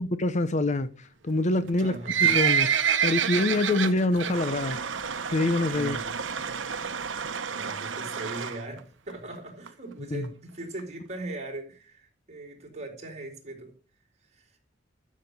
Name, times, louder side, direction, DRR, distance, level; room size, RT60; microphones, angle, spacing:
voice 1, 0.0-2.7 3.0-4.8 5.3-6.0 10.1-10.3, left 2 dB, 40° left, 0.7 m, -26 dB
Livestock farm animals working animals, 1.7-4.3 4.7-5.0 5.3-5.4 6.1-6.2 6.4-6.5 6.7-6.8 7.3-7.6 8.2-8.3 8.5-8.6 8.8-8.9 9.1-9.2 9.7-9.8 10.2-10.3 10.8-10.9, right 8 dB, 70° right, 1.1 m, -25 dB
voice 2, 1.8-2.2 5.7-6.4 7.5-13.7 14.3-14.5, right 2 dB, 35° right, 4.2 m, -40 dB
sound 1, 4.3-8.7, right 6 dB, 85° right, 1.0 m, -34 dB
12.5 x 7.4 x 5.3 m
head